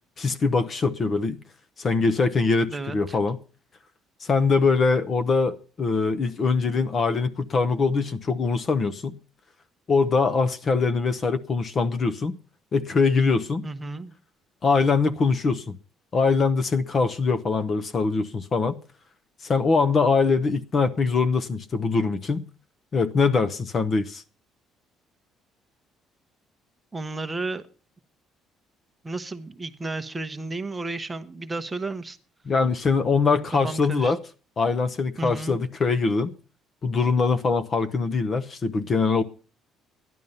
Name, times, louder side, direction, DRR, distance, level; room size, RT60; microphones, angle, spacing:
voice 1, 0.2-1.4 1.8-3.4 4.2-9.2 9.9-12.4 12.7-13.6 14.6-15.8 16.1-18.8 19.4-22.4 22.9-24.2 32.5-34.2 34.6-36.3 36.8-39.2, left 4 dB, 30° left, 0.8 m, -23 dB
voice 2, 2.7-3.2 13.6-14.1 26.9-27.6 29.0-32.2 33.6-34.1 35.2-35.6, right 3 dB, 15° right, 0.9 m, -33 dB
13.0 x 11.0 x 5.5 m
cardioid pair, 160°, 0 cm